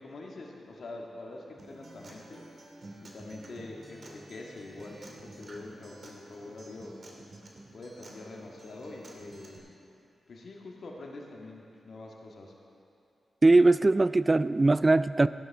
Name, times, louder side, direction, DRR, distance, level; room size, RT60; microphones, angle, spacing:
voice 1, 0.0-2.5 3.0-7.0 7.7-9.7 10.3-12.6, left 2 dB, 65° left, -1 dB, 1.7 m, -45 dB
Acoustic guitar, 1.6-9.6, right 2 dB, 60° right, 2.2 m, -50 dB
voice 2, 13.4-15.3, right 2 dB, 35° right, 15 dB, 0.3 m, -21 dB
16.0 x 11.5 x 3.5 m, 2.7 s
supercardioid pair, 40°, 0 cm